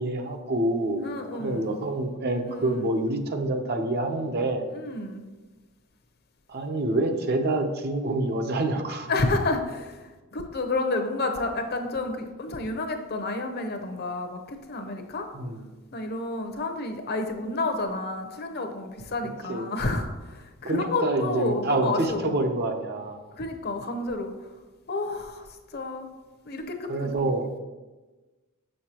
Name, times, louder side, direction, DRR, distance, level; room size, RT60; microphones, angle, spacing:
voice 1, 0.0-1.1 1.4-4.7 6.5-9.1 15.3-15.7 19.5-19.7 20.6-23.2 26.9-27.5, right 2 dB, 45° right, 5 dB, 0.7 m, -27 dB
voice 2, 1.0-1.8 2.5-2.9 4.7-5.2 9.1-15.3 15.9-22.4 23.4-24.3 24.9-25.5 25.7-26.1 26.5-27.3, left 2 dB, 45° left, 5 dB, 0.7 m, -30 dB
6.6 x 6.5 x 2.9 m, 1.2 s
head